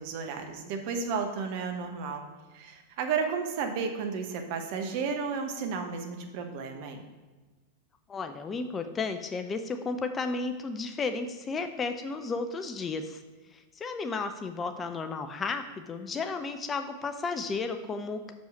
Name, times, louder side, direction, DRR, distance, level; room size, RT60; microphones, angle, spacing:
voice 1, 0.0-2.2 2.5-7.0, right 5 dB, 45° right, 5 dB, 0.9 m, -33 dB
voice 2, 8.1-13.2 13.5-18.3, left 4 dB, 20° left, 8 dB, 0.5 m, -33 dB
6.4 x 5.2 x 5.2 m, 1.3 s
figure-of-eight pair, 90°, 0 cm